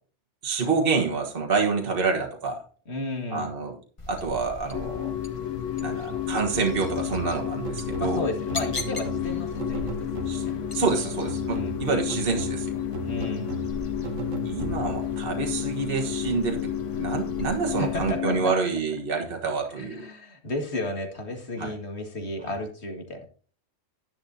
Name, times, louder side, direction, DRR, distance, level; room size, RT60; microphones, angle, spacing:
voice 1, 0.4-2.6 3.3-3.7 4.1-5.1 5.8-8.2 10.3-10.5 10.7-12.7 14.4-16.7 17.0-20.1 21.6-21.7, right 4 dB, 50° right, 1 dB, 1.6 m, -27 dB
voice 2, 2.9-3.5 8.0-10.6 11.0-11.1 11.5-11.8 13.0-13.5 17.8-18.5 19.8-23.3, left 1 dB, 60° left, 4 dB, 2.2 m, -33 dB
sound 1, 4.0-18.1, left 3 dB, 25° left, 1.2 m, -41 dB
sound 2, 4.7-18.5, left 10 dB, 80° left, 1.0 m, -31 dB
sound 3, 6.8-10.7 11.3-15.1, right 6 dB, 80° right, 1.3 m, -38 dB
10.5 x 10.5 x 2.8 m, 0.42 s
omnidirectional pair, 1.3 m